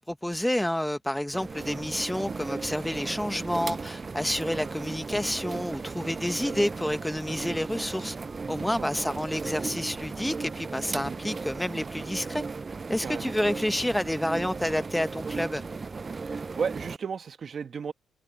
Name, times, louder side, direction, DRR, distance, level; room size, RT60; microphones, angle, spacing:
voice 1, 0.0-8.2 8.5-12.4 12.9-15.6, left 1 dB, 5° left, 1.0 m, -29 dB
sound 1, 1.3-17.0, right 4 dB, 30° right, 0.3 m, -36 dB
voice 2, 8.5-9.2 11.0-11.2 13.0-13.3 16.2-17.9, right 6 dB, 45° right, 1.1 m, -35 dB
cardioid pair, 90°, 0 cm